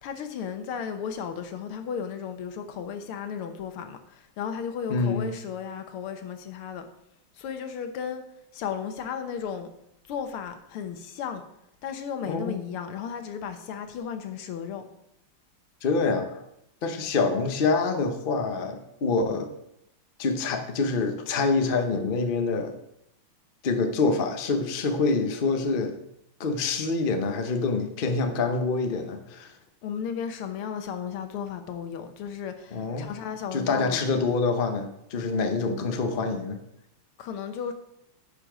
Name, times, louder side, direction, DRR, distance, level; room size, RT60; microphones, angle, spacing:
voice 1, 0.0-6.9 7.4-8.2 8.5-9.7 10.1-11.4 11.8-14.8 29.8-34.2 37.2-37.7, left 7 dB, 80° left, 1.8 m, -34 dB
voice 2, 4.9-5.3 12.3-12.6 15.8-16.4 16.8-19.5 20.2-22.8 23.6-26.0 26.4-29.5 32.7-33.1 33.5-36.6, left 4 dB, 55° left, 0.6 m, -26 dB
10.5 x 5.7 x 5.0 m
omnidirectional pair, 2.4 m